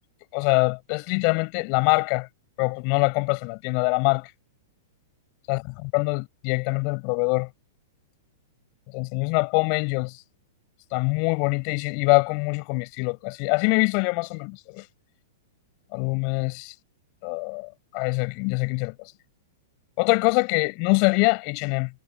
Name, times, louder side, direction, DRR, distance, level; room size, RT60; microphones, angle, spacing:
voice 1, 0.3-2.3 2.6-4.3 5.5-7.5 8.9-10.2 10.9-14.8 15.9-16.7 17.2-19.1 20.0-21.9, left 40 dB or more, 45° left, 7.1 m, -24 dB
hypercardioid pair, 110°, 0 cm